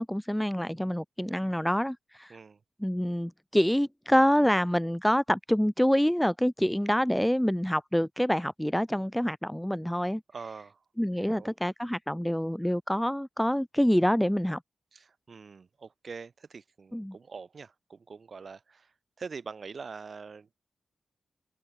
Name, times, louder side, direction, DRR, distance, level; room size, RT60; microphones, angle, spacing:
voice 1, 0.0-2.3 2.8-10.2 11.0-14.6 16.9-17.1, equal, 5° left, 0.3 m, -26 dB
voice 2, 2.3-2.6 10.3-10.8 11.2-11.5 14.9-20.6, right 5 dB, 50° right, 3.3 m, -44 dB
cardioid pair, 85°, 0 cm